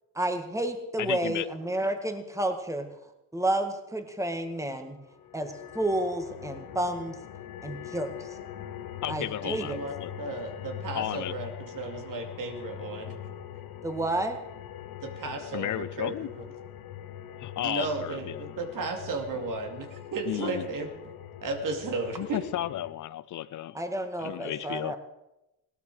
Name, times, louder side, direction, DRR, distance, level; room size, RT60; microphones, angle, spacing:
voice 1, 0.2-2.9 3.3-5.0 5.3-7.2 7.6-8.1 9.1-9.7 13.8-14.4 23.7-25.0, right 1 dB, 10° right, 6 dB, 1.9 m, -30 dB
voice 2, 1.0-1.5 9.0-10.1 10.9-11.4 15.5-16.3 17.4-18.6 20.2-20.7 22.2-23.8 24.2-25.0, left 13 dB, 55° left, 17 dB, 0.5 m, -33 dB
sound 1, 5.1-22.9, left 10 dB, 75° left, 1.0 m, -42 dB
voice 3, 9.4-13.1 15.0-16.1 17.6-20.9 21.4-22.4, right 3 dB, 60° right, 4 dB, 2.6 m, -34 dB
17.5 x 12.0 x 4.9 m, 0.93 s
cardioid pair, 85°, 36 cm